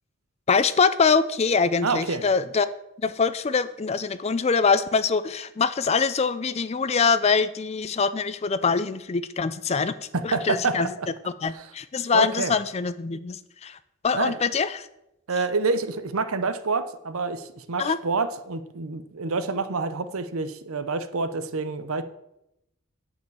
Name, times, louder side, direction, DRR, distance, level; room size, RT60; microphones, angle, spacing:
voice 1, 0.5-2.7 3.0-9.9 10.2-10.9 11.3-13.8 14.0-14.9 17.8-18.0, left 5 dB, 30° left, 14 dB, 0.4 m, -24 dB
voice 2, 1.8-2.2 10.1-11.1 11.5-11.6 12.1-12.5 14.1-14.4 15.3-22.0, right 4 dB, 75° right, 12 dB, 0.7 m, -27 dB
9.5 x 5.1 x 6.9 m, 0.86 s
head